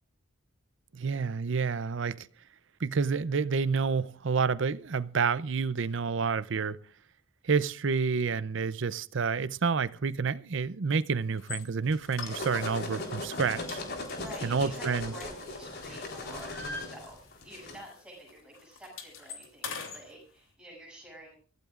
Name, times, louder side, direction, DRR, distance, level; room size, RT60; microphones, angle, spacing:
voice 1, 0.9-2.3 2.8-6.8 7.4-13.8 14.4-15.1, right 5 dB, 60° right, 0.6 m, -29 dB
sound 1, 11.4-11.6 12.1-12.9 13.2-13.4 13.7-15.7 16.1-17.5 17.8-18.0 18.3-20.0, left 4 dB, 70° left, 3.1 m, -42 dB
sound 2, 11.9-17.8, left 2 dB, 50° left, 3.8 m, -38 dB
voice 2, 14.0-21.3, right 1 dB, 5° right, 7.5 m, -49 dB
25.0 x 15.0 x 2.5 m
head